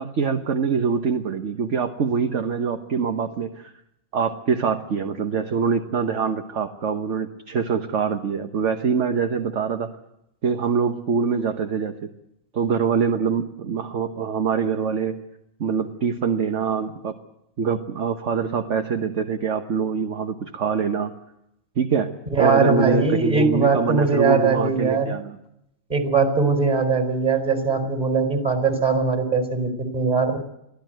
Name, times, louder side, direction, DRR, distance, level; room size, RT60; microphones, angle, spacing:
voice 1, 0.0-3.7 4.1-9.9 10.4-12.1 12.5-15.1 15.6-17.1 17.6-21.1 21.8-22.1 22.4-25.4, right 6 dB, 60° right, 6 dB, 1.5 m, -24 dB
voice 2, 22.3-25.2 25.9-30.4, right 4 dB, 30° right, 7 dB, 4.7 m, -21 dB
24.0 x 16.0 x 9.2 m, 0.82 s
omnidirectional pair, 1.4 m